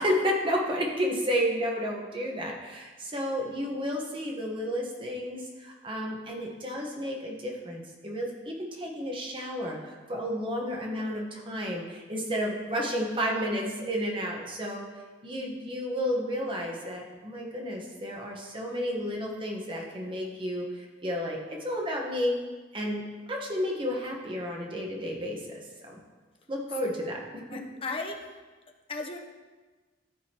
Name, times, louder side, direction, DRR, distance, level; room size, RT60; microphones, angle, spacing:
voice 1, 0.0-14.8 15.2-22.4 22.7-26.0 26.5-27.6, equal, 30° right, -1 dB, 1.1 m, -32 dB
voice 2, 27.5-28.4 28.9-29.2, left 3 dB, 30° left, 3 dB, 0.8 m, -36 dB
13.0 x 4.8 x 2.9 m, 1.3 s
head